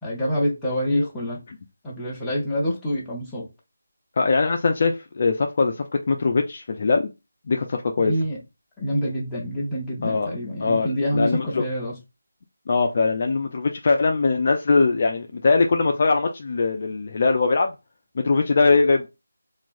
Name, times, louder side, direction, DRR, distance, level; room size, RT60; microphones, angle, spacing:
voice 1, 0.0-1.4 1.8-3.5 8.0-8.4 8.8-11.9, equal, 5° left, 0.6 m, -26 dB
voice 2, 4.2-5.8 6.1-7.1 7.5-8.1 10.0-10.4 10.6-11.6 12.7-17.7 18.2-19.1, left 4 dB, 40° left, 0.3 m, -21 dB
3.0 x 2.3 x 2.5 m
figure-of-eight pair, 170°, 0 cm